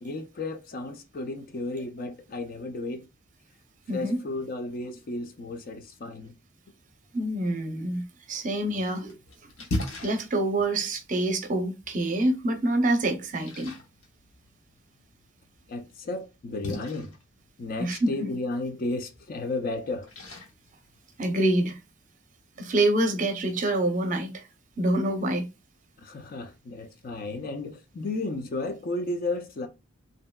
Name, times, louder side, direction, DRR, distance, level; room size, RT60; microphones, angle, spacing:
voice 1, 0.0-3.1 3.9-6.3 15.7-17.1 17.6-20.1 26.0-29.7, left 2 dB, 45° left, 0.4 m, -33 dB
voice 2, 7.1-9.2 10.0-13.7 17.8-18.3 21.2-21.8 22.6-24.4 24.8-25.5, right 1 dB, 40° right, 0.6 m, -26 dB
Splash splatter, 8.6-21.6, left 1 dB, 80° left, 0.9 m, -41 dB
2.9 x 2.6 x 2.2 m
head